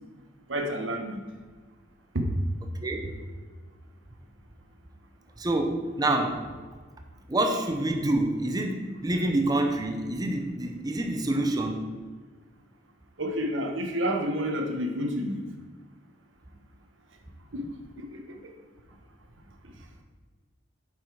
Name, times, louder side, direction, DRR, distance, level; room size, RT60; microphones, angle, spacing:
voice 1, 0.5-1.2 2.1-2.3 13.2-15.4 17.5-17.7 18.0-18.5, equal, 70° right, 4 dB, 1.1 m, -29 dB
voice 2, 5.4-6.5 7.3-11.9, right 1 dB, 20° right, 4 dB, 0.7 m, -27 dB
7.8 x 5.6 x 4.7 m, 1.4 s
head